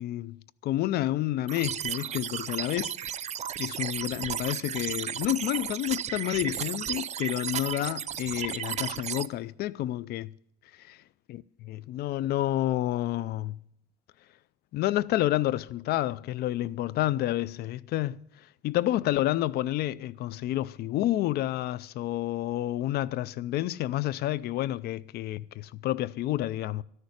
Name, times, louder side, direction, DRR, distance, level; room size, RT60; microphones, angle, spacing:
voice 1, 0.0-3.0 3.6-10.3 10.9-11.0 11.7-13.6 14.7-18.2 18.6-26.8, left 14 dB, 70° left, 0.5 m, -29 dB
sound 1, 1.5-9.3, right 10 dB, 40° right, 0.5 m, -34 dB
13.0 x 6.5 x 9.6 m
cardioid pair, 110°, 17 cm